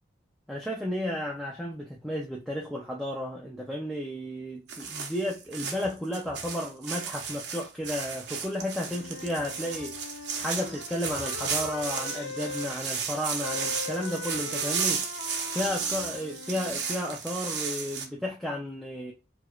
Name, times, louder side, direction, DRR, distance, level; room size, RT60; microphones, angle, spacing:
voice 1, 0.5-9.9 10.4-15.0 15.5-19.1, left 1 dB, ahead, 0.4 m, -33 dB
sound 1, 4.7-18.0, right 6 dB, 65° right, 0.7 m, -34 dB
Wind instrument woodwind instrument, 8.8-12.7 13.4-16.9, left 5 dB, 90° left, 0.3 m, -41 dB
4.5 x 2.4 x 2.3 m
head